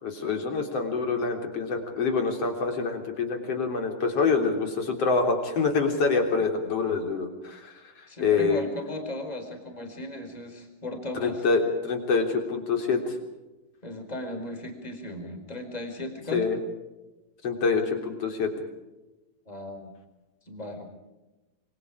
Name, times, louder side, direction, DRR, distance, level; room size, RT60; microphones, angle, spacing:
voice 1, 0.0-8.6 11.1-13.1 16.3-16.6 17.4-18.5, left 4 dB, 35° left, 4 dB, 4.1 m, -26 dB
voice 2, 8.1-11.5 13.8-16.5 19.5-19.9 20.5-20.9, left 1 dB, 10° left, 5 dB, 4.0 m, -36 dB
27.0 x 24.5 x 5.0 m, 1.1 s
omnidirectional pair, 5.1 m